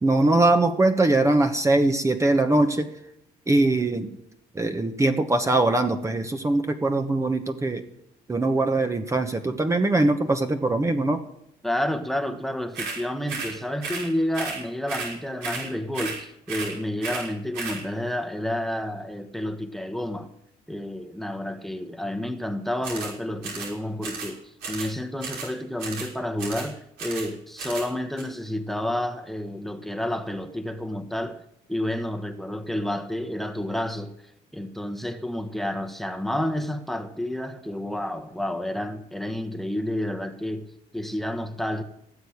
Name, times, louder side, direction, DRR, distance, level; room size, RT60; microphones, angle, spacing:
voice 1, 0.0-2.9 3.5-4.2 4.5-7.8 8.3-11.2, right 2 dB, 15° right, 1.1 m, -22 dB
voice 2, 11.6-20.3 20.7-31.4 31.7-41.8, left 1 dB, ahead, 1.2 m, -30 dB
sound 1, 12.7-13.0 13.3-13.5 13.8-14.1 14.3-14.6 14.9-15.1 15.4-15.7 15.9-16.2 16.5-16.7 17.0-17.3 17.5-17.8 22.8-23.1 23.4-23.7 24.0-24.3 24.6-24.9 25.2-25.5 25.8-26.1 26.4-26.7 27.0-27.3 27.6-27.9 28.2-28.3, right 4 dB, 85° right, 5.7 m, -33 dB
18.0 x 7.9 x 8.7 m
cardioid pair, 110°, 17 cm